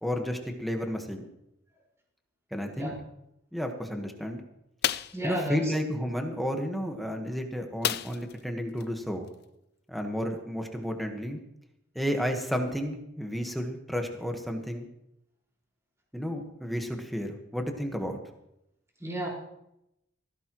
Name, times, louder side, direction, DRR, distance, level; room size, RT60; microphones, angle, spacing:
voice 1, 0.0-1.3 2.5-2.9 3.5-4.4 5.2-9.3 9.9-11.4 11.9-14.9 16.1-18.2, equal, ahead, 3 dB, 1.4 m, -32 dB
sound 1, 4.8-5.2 7.8-8.4 8.8-8.9 9.3-9.4, left 11 dB, 60° left, 0.5 m, -30 dB
voice 2, 5.1-5.7 19.0-19.3, equal, 15° right, -2 dB, 5.0 m, -32 dB
18.5 x 16.0 x 3.1 m, 0.83 s
head